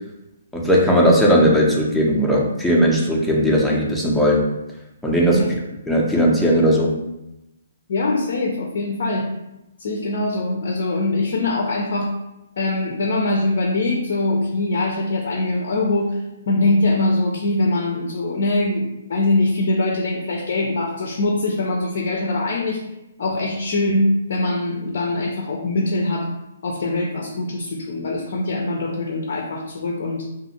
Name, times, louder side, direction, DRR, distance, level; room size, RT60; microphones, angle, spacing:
voice 1, 0.5-4.5 5.0-5.5 5.9-6.9, equal, ahead, -4 dB, 0.5 m, -17 dB
voice 2, 7.9-9.3 9.8-12.1 12.6-22.8 23.2-26.3 26.6-30.3, left 2 dB, 60° left, 0 dB, 0.4 m, -22 dB
2.5 x 2.4 x 2.8 m, 0.91 s
figure-of-eight pair, 135°, 0 cm